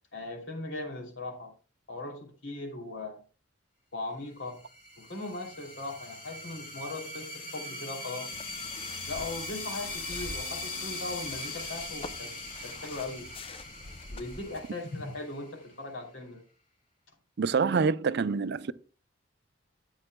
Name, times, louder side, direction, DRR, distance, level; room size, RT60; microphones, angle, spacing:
voice 1, 0.1-1.5 1.9-3.2 3.9-4.6 5.0-8.3 9.1-12.3 12.6-13.3 14.1-16.4, left 2 dB, 70° left, 2.9 m, -39 dB
sound 1, 4.5-15.7, left 2 dB, 45° left, 2.0 m, -40 dB
sound 2, 8.3-14.6, left 3 dB, 30° left, 0.5 m, -46 dB
voice 2, 17.4-18.7, right 5 dB, 55° right, 0.5 m, -26 dB
13.0 x 8.9 x 2.2 m
head